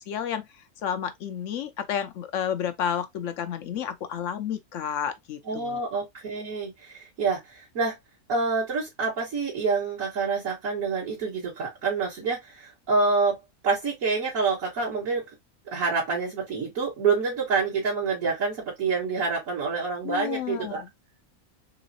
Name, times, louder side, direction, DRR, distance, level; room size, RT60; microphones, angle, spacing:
voice 1, 0.1-0.5 0.8-5.8 20.0-20.9, left 8 dB, 70° left, 0.9 m, -31 dB
voice 2, 5.5-8.0 8.3-15.2 15.7-20.8, right 4 dB, 70° right, 1.9 m, -27 dB
3.9 x 3.1 x 2.7 m
omnidirectional pair, 1.5 m